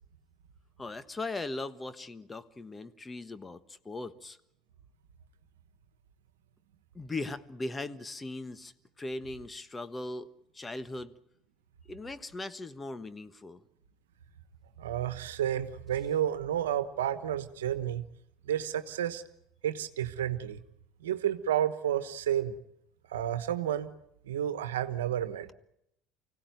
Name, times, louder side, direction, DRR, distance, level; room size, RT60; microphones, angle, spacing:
voice 1, 0.8-4.4 6.9-11.1 11.9-13.6, left 2 dB, 20° left, 13 dB, 1.3 m, -39 dB
voice 2, 14.8-18.0 18.4-19.2 19.6-20.6 21.0-22.6 23.1-23.9 24.3-25.5, right 10 dB, 85° right, 12 dB, 1.2 m, -31 dB
25.0 x 17.0 x 9.4 m, 0.79 s
hypercardioid pair, 75°, 0 cm